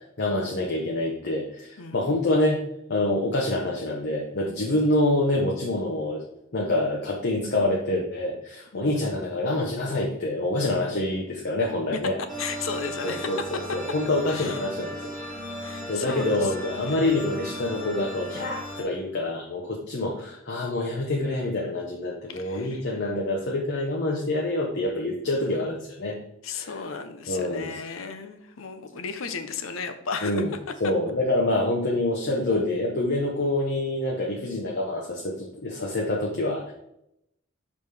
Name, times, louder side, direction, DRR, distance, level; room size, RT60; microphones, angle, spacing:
voice 1, 0.2-2.6 2.9-6.2 6.5-12.2 13.0-14.9 15.9-26.2 26.5-26.8 27.3-27.8 30.2-30.5 30.8-36.7, left 1 dB, 55° left, -2 dB, 0.9 m, -26 dB
voice 2, 1.8-2.2 8.7-8.9 12.4-13.3 14.3-14.6 15.6-16.5 16.9-17.0 22.3-22.8 26.4-30.4, left 5 dB, 80° left, 9 dB, 0.7 m, -35 dB
sound 1, 12.3-18.8, equal, 5° left, 1.8 m, -36 dB
6.2 x 5.2 x 3.4 m, 0.80 s
head